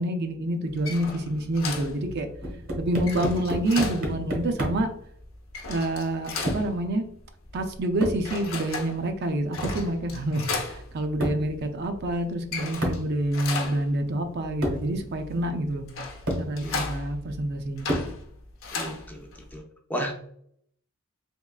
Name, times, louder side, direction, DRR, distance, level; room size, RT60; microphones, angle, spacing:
voice 1, 0.0-2.3 2.8-4.9 5.7-7.1 7.5-15.9 16.4-17.9, right 1 dB, 50° right, 6 dB, 0.4 m, -27 dB
sound 1, 0.7-19.6, left 4 dB, 80° left, 0.8 m, -37 dB
sound 2, 2.4-5.0 6.5-6.8 8.0-8.3 9.6-9.9 11.2-11.5 12.8-13.1 14.1-14.2 14.6-14.9 15.8-15.9 16.3-16.5 17.9-18.2, equal, 75° right, 1.2 m, -30 dB
voice 2, 18.7-19.6 19.9-20.1, equal, 10° left, 1 dB, 0.5 m, -34 dB
3.5 x 3.0 x 2.3 m, 0.65 s
head